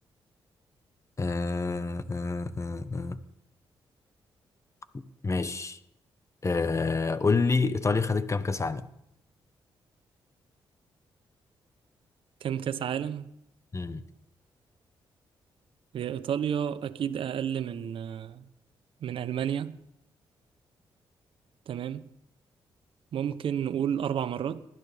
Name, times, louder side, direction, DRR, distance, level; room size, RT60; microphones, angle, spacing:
voice 1, 1.2-3.2 4.9-5.8 6.4-8.8 13.7-14.0, left 4 dB, 30° left, 1.1 m, -28 dB
voice 2, 12.4-13.3 15.9-18.5 19.0-19.8 21.7-22.1 23.1-24.6, right 9 dB, 70° right, 0.8 m, -31 dB
20.0 x 12.5 x 3.5 m
supercardioid pair, 60°, 9 cm